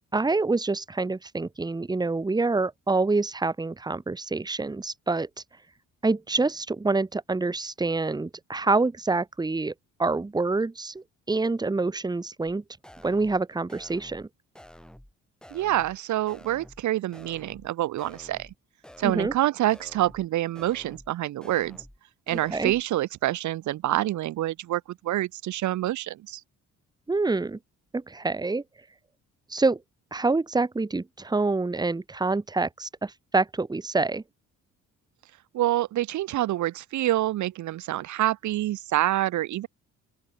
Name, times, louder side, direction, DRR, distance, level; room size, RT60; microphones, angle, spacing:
voice 1, 0.0-5.3 6.0-9.7 10.0-12.6 13.0-14.3 19.0-19.3 22.5-22.7 27.1-27.6 27.9-28.6 29.5-29.8 30.1-34.2, right 3 dB, 15° right, 1.1 m, -26 dB
sound 1, 12.5-12.6 12.8-13.4 13.7-14.3 14.6-15.1 15.4-16.0 16.3-16.8 17.1-17.7 18.0-18.6 18.8-19.4 19.7-20.3 20.6-21.1 21.4-22.0 22.3-22.8, equal, 5° left, 3.5 m, -49 dB
voice 2, 15.5-18.5 19.0-21.8 22.3-26.4 35.5-39.7, right 14 dB, 70° right, 0.9 m, -27 dB
open air
cardioid pair, 90°, 30 cm